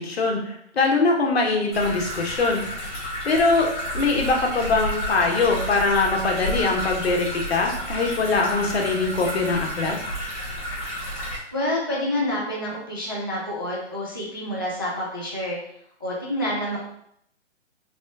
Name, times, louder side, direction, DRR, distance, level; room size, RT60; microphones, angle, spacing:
voice 1, 0.0-2.6 3.2-10.0, left 3 dB, 60° left, 1 dB, 1.1 m, -22 dB
sound 1, 1.7-11.4, equal, 10° left, 1.6 m, -31 dB
voice 2, 11.5-15.6 16.0-16.8, left 1 dB, 20° right, -6 dB, 0.4 m, -28 dB
4.2 x 3.0 x 3.4 m, 0.71 s
hypercardioid pair, 175°, 35 cm